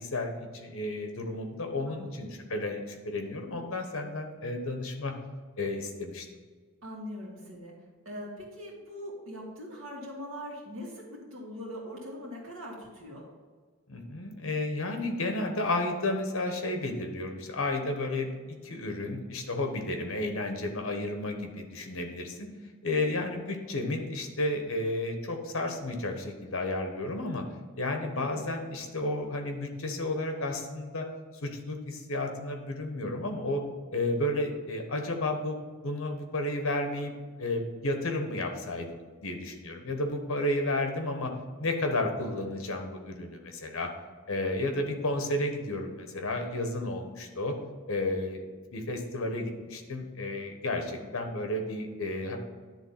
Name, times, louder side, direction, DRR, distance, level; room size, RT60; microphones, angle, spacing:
voice 1, 0.0-5.1 5.6-6.3 13.9-22.5 22.8-27.4 27.8-31.1 31.4-33.6 33.9-35.6 35.8-37.1 37.4-41.3 41.6-43.9 44.3-47.5 47.9-48.4 48.7-52.4, left 2 dB, 65° left, 4 dB, 1.1 m, -32 dB
voice 2, 6.8-7.7 8.1-13.3 28.1-28.4 50.9-51.1, equal, 65° right, -3 dB, 2.2 m, -42 dB
10.0 x 3.6 x 5.7 m, 1.5 s
head